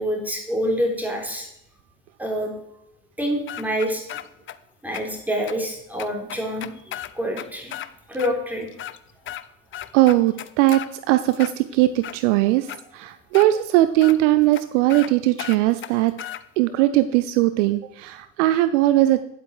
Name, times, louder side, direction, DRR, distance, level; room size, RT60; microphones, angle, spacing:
voice 1, 0.0-1.5 2.2-2.5 3.2-4.0 4.8-7.7 8.1-8.7, equal, 5° right, 0 dB, 3.6 m, -26 dB
sound 1, 3.5-4.6 4.9-5.0 5.5-5.6 6.0-7.9 8.2-8.3 8.7-9.4 9.7-10.9 11.3-12.2 12.7-12.8 13.3-13.5 14.0-14.2 14.5-14.6 14.9-15.1 15.4-16.4, left 11 dB, 30° left, 0.6 m, -35 dB
voice 2, 9.9-12.7 12.9-16.1 16.6-19.2, right 15 dB, 65° right, 12 dB, 0.6 m, -19 dB
10.0 x 8.1 x 4.6 m, 0.79 s
figure-of-eight pair, 55°, 40 cm